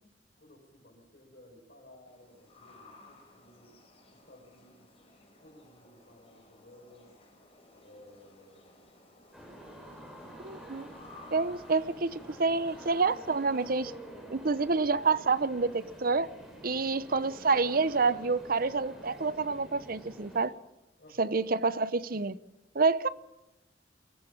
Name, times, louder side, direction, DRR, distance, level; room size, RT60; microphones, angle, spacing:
voice 1, 0.4-3.7 4.1-4.9 5.4-7.1 7.8-9.1 9.9-10.3 21.0-21.4, left 1 dB, 55° left, 5.8 m, -57 dB
sound 1, 2.1-13.9, left 2 dB, 35° left, 6.1 m, -57 dB
sound 2, 9.3-20.5, right 1 dB, ahead, 6.9 m, -48 dB
voice 2, 10.4-10.9 11.3-13.9 14.3-16.3 16.6-20.5 21.2-22.4 22.7-23.1, right 4 dB, 55° right, 0.9 m, -28 dB
23.5 x 16.5 x 7.2 m
head